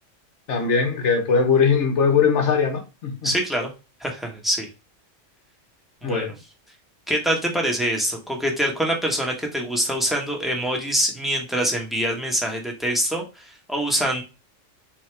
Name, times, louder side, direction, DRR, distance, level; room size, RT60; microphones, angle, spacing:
voice 1, 0.5-3.2 6.0-6.3, left 5 dB, 70° left, 1.3 m, -20 dB
voice 2, 3.2-3.7 4.0-4.7 6.0-6.3 7.1-14.2, equal, ahead, 1.0 m, -25 dB
3.9 x 3.6 x 3.3 m
omnidirectional pair, 1.3 m